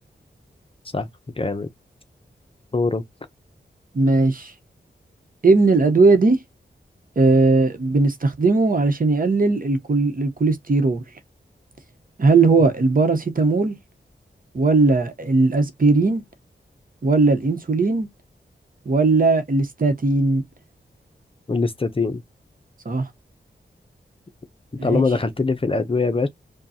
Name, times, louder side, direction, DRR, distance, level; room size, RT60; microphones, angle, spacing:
voice 1, 1.4-1.7 2.7-3.0 21.5-22.2 24.8-26.3, left 3 dB, 30° left, 0.6 m, -22 dB
voice 2, 3.9-4.5 5.4-6.4 7.2-11.0 12.2-13.8 14.5-16.2 17.0-18.1 18.8-20.4 22.8-23.1 24.8-25.0, right 3 dB, 50° right, 1.0 m, -18 dB
5.1 x 2.3 x 2.8 m
wide cardioid pair, 85°, 19 cm